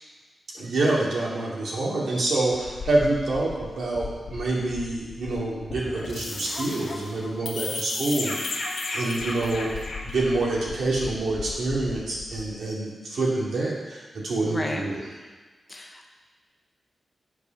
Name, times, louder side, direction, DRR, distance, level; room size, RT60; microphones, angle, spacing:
voice 1, 0.5-8.6 8.9-15.1, right 2 dB, 80° right, -5 dB, 2.4 m, -27 dB
sound 1, 2.5-12.6, left 3 dB, 85° left, 1.4 m, -35 dB
voice 2, 14.4-14.8 15.7-16.1, left 1 dB, 20° left, 3 dB, 0.8 m, -33 dB
8.6 x 4.9 x 5.8 m, 1.4 s
wide cardioid pair, 150°, 0 cm